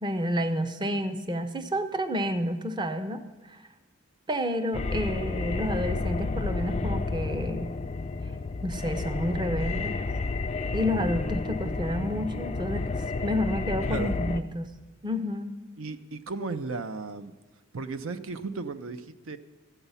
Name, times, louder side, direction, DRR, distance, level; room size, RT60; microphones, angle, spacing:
voice 1, 0.0-3.2 3.5-3.6 4.3-7.7 8.6-10.0 10.7-12.9 13.2-14.7 15.0-15.5, equal, 20° right, 9 dB, 0.6 m, -30 dB
sound 1, 4.7-14.4, left 3 dB, 30° left, 0.3 m, -31 dB
voice 2, 15.8-17.3 17.7-19.4, right 4 dB, 70° right, 11 dB, 0.6 m, -35 dB
13.0 x 8.0 x 5.5 m, 1.3 s
head